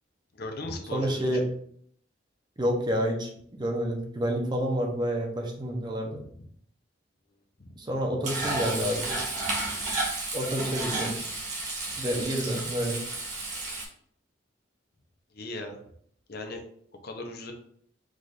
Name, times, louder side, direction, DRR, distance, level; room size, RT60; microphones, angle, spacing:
voice 1, 0.3-1.4 7.6-7.7 15.3-15.8 16.3-16.6 17.0-17.5, left 2 dB, 55° left, 3 dB, 0.8 m, -37 dB
voice 2, 0.9-1.4 2.6-6.2 7.8-9.2 10.3-11.1 12.0-13.0, equal, 25° right, 1 dB, 0.8 m, -29 dB
Frying (food), 8.2-13.8, right 2 dB, 40° right, 1.4 m, -32 dB
4.9 x 2.6 x 4.0 m, 0.65 s
head